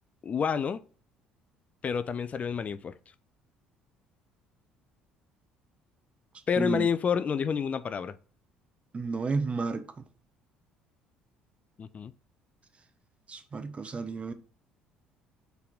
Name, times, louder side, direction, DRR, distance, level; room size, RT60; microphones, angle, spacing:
voice 1, 0.2-0.8 1.8-2.9 6.5-8.2 11.8-12.1, left 6 dB, 35° left, 0.3 m, -29 dB
voice 2, 6.6-6.9 8.9-9.9 13.3-14.3, right 4 dB, 30° right, 0.7 m, -31 dB
4.5 x 3.4 x 3.4 m
hypercardioid pair, 60°, 4 cm